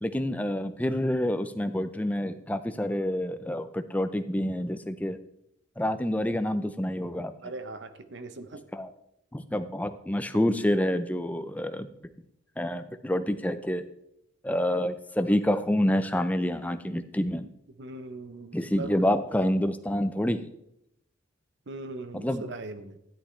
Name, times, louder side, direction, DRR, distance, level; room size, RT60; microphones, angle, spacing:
voice 1, 0.0-5.2 5.8-7.3 8.7-8.9 9.3-11.9 12.6-13.8 14.4-17.5 18.5-20.5 22.1-22.4, left 1 dB, 5° left, 9 dB, 0.5 m, -27 dB
voice 2, 7.4-8.6 17.8-19.0 21.7-22.9, right 2 dB, 55° right, 10 dB, 0.8 m, -39 dB
13.0 x 10.5 x 3.3 m, 0.79 s
head